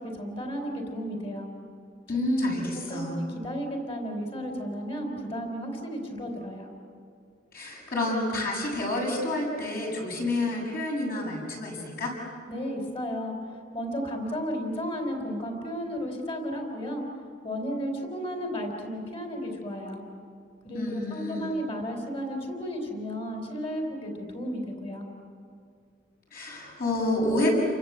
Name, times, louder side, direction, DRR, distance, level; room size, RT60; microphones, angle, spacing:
voice 1, 0.0-1.5 2.1-2.3 2.9-6.7 12.5-13.3 13.7-17.0 17.4-20.0 20.6-25.0, equal, 30° left, 3 dB, 4.3 m, -33 dB
voice 2, 2.1-3.2 7.5-12.1 20.7-21.5 26.3-27.5, left 2 dB, 50° left, -1 dB, 7.9 m, -29 dB
30.0 x 24.5 x 8.3 m, 2.3 s
head